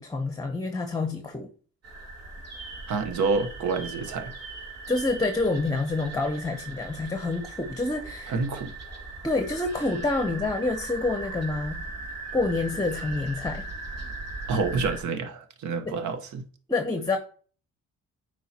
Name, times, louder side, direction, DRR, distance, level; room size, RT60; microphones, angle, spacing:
voice 1, 0.0-1.5 4.9-8.4 9.2-11.9 12.3-13.7 15.9-16.0 16.7-17.2, left 3 dB, 10° left, 0.8 m, -27 dB
sound 1, 1.8-15.0, right 3 dB, 55° right, 2.7 m, -39 dB
voice 2, 2.9-4.3 8.3-8.7 14.5-16.4, right 4 dB, 75° right, 1.1 m, -28 dB
8.8 x 4.7 x 2.9 m
cardioid pair, 90°, 30 cm